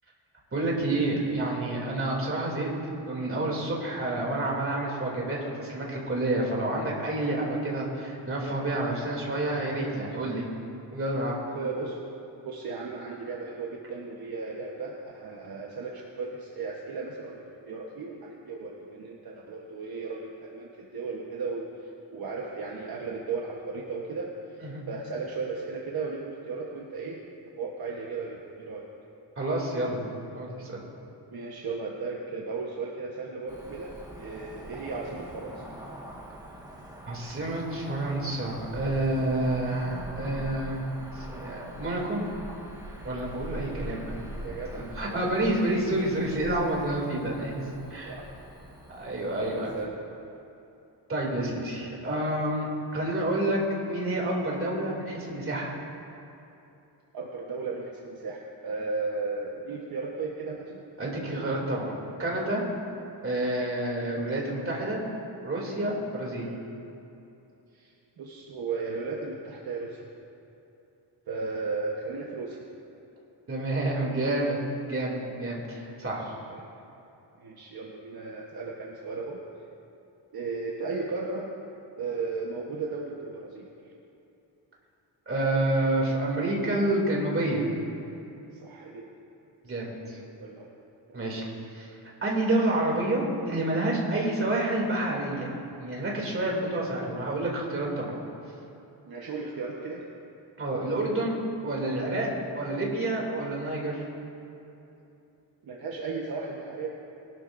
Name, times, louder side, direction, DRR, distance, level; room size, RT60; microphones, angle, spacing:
voice 1, 0.5-2.7 3.1-10.5 10.9-11.4 24.6-24.8 29.4-30.0 30.3-30.8 37.1-40.8 41.1-42.2 43.0-44.2 44.8-48.1 48.9-49.7 51.1-52.7 52.9-55.8 61.0-61.9 62.2-62.6 63.2-65.0 65.4-66.5 73.5-76.2 85.3-87.7 89.6-90.2 91.1-91.4 91.7-91.9 92.2-98.1 100.6-104.1, right 1 dB, 30° right, -3 dB, 2.8 m, -29 dB
voice 2, 11.5-12.0 12.4-21.6 22.1-27.2 27.6-28.9 31.3-35.6 43.7-44.0 44.4-45.2 48.1-48.3 49.4-50.0 57.1-61.2 63.4-63.5 64.0-64.2 66.4-66.6 67.7-70.0 71.3-72.6 76.2-76.7 77.4-79.4 80.3-81.5 82.0-83.7 88.6-89.1 90.2-90.7 91.1-91.5 99.0-100.0 105.6-106.9, right 4 dB, 60° right, -2 dB, 1.2 m, -35 dB
Cricket / Motor vehicle (road), 33.5-49.9, equal, 10° right, 1.6 m, -43 dB
21.5 x 12.0 x 2.6 m, 2.9 s
wide cardioid pair, 140°, 43 cm